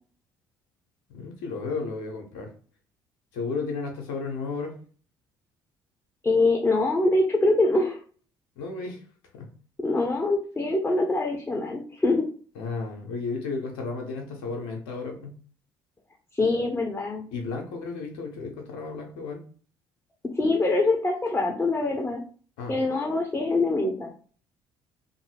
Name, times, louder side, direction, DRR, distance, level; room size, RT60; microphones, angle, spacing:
voice 1, 1.1-2.5 3.3-4.7 8.6-9.0 9.3-9.5 12.6-15.4 17.3-19.4 22.6-22.8, left 4 dB, 65° left, 2 dB, 0.6 m, -33 dB
voice 2, 6.2-8.0 9.8-12.3 16.3-17.3 20.4-22.2 22.7-24.1, left 2 dB, 15° left, 2 dB, 0.6 m, -24 dB
2.6 x 2.4 x 2.9 m, 0.42 s
figure-of-eight pair, 50°, 12 cm